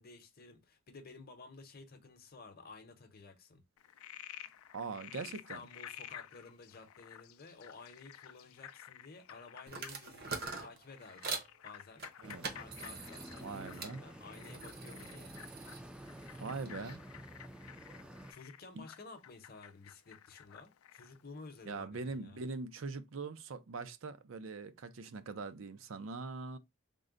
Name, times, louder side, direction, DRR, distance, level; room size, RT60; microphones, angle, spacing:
voice 1, 0.0-3.6 5.3-11.4 11.6-12.0 12.5-15.3 18.3-22.4, left 3 dB, 45° left, 0.8 m, -53 dB
Frog, 3.8-21.2, left 11 dB, 75° left, 0.4 m, -53 dB
voice 2, 4.7-5.6 12.2-12.5 13.4-14.0 16.4-17.0 18.8-18.9 21.7-26.6, right 4 dB, 65° right, 0.5 m, -42 dB
sound 1, 9.7-11.5 12.0-14.0 14.3-17.0, right 4 dB, 45° right, 0.8 m, -44 dB
sound 2, 12.2-18.3, right 1 dB, 5° right, 0.4 m, -50 dB
3.7 x 2.1 x 3.7 m
head